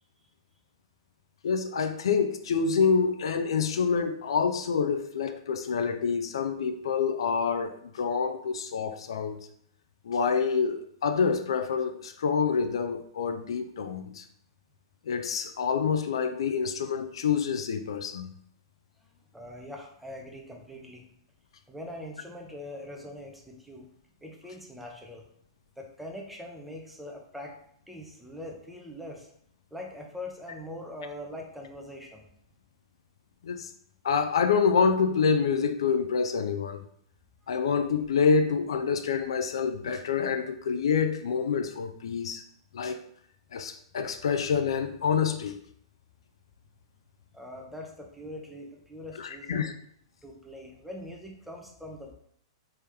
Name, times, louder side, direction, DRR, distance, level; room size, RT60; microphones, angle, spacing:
voice 1, 1.4-9.5 10.0-14.2 15.1-18.3 33.4-33.7 34.0-36.8 37.5-42.4 42.7-43.0 43.5-45.6 49.2-49.7, left 6 dB, 85° left, 8 dB, 0.4 m, -27 dB
voice 2, 19.1-21.1 21.7-23.9 24.2-25.3 25.8-27.6 27.9-29.3 29.7-32.3 37.5-37.6 47.3-49.7 50.2-52.1, left 1 dB, 5° right, 0 dB, 0.6 m, -42 dB
3.3 x 2.9 x 3.5 m, 0.66 s
hypercardioid pair, 140°, 3 cm